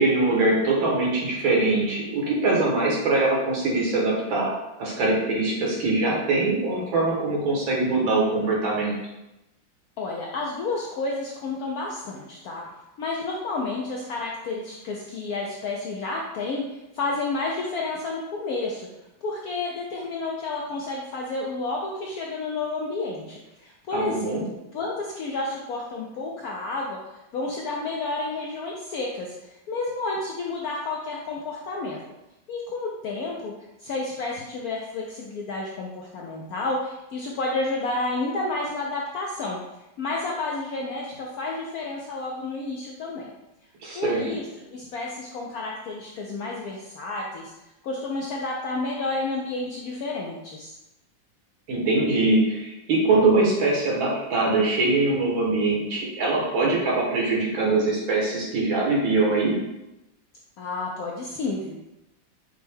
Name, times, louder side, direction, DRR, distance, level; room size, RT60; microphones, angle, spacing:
voice 1, 0.0-9.0 23.9-24.4 43.8-44.3 51.7-59.6, right 2 dB, 85° right, -3 dB, 1.9 m, -23 dB
voice 2, 10.0-12.6 13.0-18.9 19.2-27.0 27.3-32.0 32.5-33.5 33.8-39.6 40.0-43.3 43.9-44.4 44.7-47.5 47.8-50.7 60.6-61.7, left 3 dB, 75° left, -2 dB, 0.8 m, -30 dB
6.1 x 2.2 x 3.4 m, 0.93 s
omnidirectional pair, 2.1 m